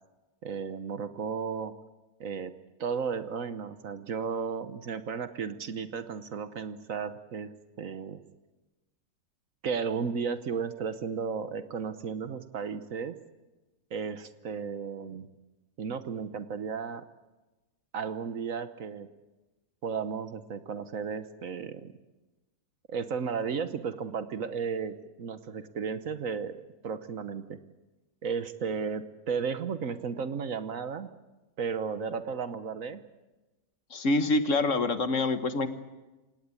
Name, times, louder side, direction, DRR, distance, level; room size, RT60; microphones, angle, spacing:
voice 1, 0.4-1.7 2.2-2.5 2.8-7.5 7.8-8.2 9.6-13.2 13.9-15.3 15.8-17.0 17.9-19.1 19.8-21.9 22.9-27.6 28.2-31.1 31.6-33.0, right 6 dB, 60° right, 11 dB, 1.3 m, -34 dB
voice 2, 33.9-35.7, left 2 dB, 55° left, 10 dB, 1.5 m, -26 dB
27.5 x 18.0 x 8.4 m, 1.1 s
omnidirectional pair, 1.7 m